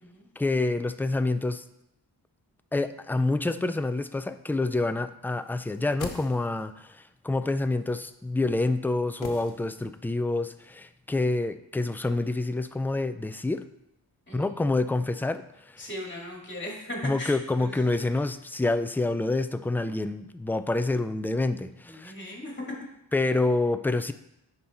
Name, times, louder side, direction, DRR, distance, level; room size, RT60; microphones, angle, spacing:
voice 1, 0.4-1.6 2.7-13.6 14.3-15.9 17.0-22.1 23.1-24.1, left 2 dB, 5° left, 10 dB, 0.3 m, -27 dB
sound 1, 5.6-6.8 9.2-10.1 10.4-10.5, left 5 dB, 90° left, 1.1 m, -41 dB
voice 2, 15.8-17.8 21.9-22.6, left 1 dB, 25° left, -1 dB, 2.6 m, -38 dB
9.4 x 5.5 x 4.3 m, 0.82 s
wide cardioid pair, 100°, 44 cm